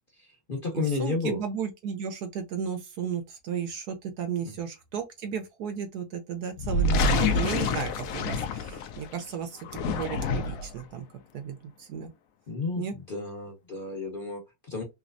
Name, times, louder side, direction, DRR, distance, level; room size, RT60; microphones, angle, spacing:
voice 1, 0.1-1.4 4.4-4.5 6.7-7.0 12.5-14.8, left 4 dB, 40° left, 0.8 m, -32 dB
voice 2, 0.7-11.1 11.3-12.1 12.8-12.9, right 7 dB, 65° right, 1.1 m, -34 dB
sound 1, 6.5-9.1 9.6-10.8, left 3 dB, 70° left, 0.8 m, -27 dB
3.3 x 3.0 x 2.5 m
omnidirectional pair, 2.0 m